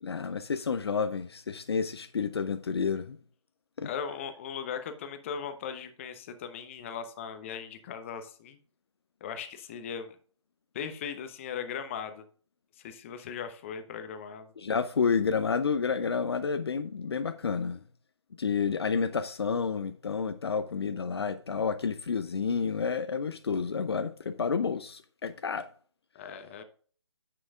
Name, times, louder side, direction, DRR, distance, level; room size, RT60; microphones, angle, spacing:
voice 1, 0.0-3.2 3.8-3.9 14.6-17.8 18.4-25.7, left 5 dB, 55° left, 0.6 m, -30 dB
voice 2, 3.8-8.6 9.2-10.2 10.7-12.2 12.8-14.5 26.1-26.6, left 7 dB, 25° left, 0.9 m, -38 dB
9.7 x 7.8 x 2.4 m
figure-of-eight pair, 150°, 16 cm